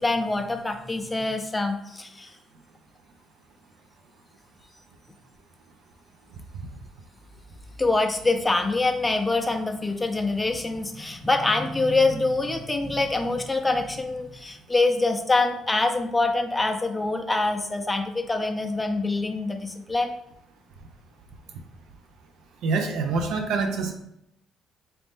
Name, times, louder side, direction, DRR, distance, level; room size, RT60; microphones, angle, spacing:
voice 1, 0.0-2.3 7.8-20.1, left 2 dB, 10° left, 4 dB, 0.4 m, -25 dB
voice 2, 22.6-23.9, right 4 dB, 80° right, 5 dB, 0.5 m, -25 dB
4.2 x 2.6 x 3.5 m, 0.79 s
cardioid pair, 130°, 0 cm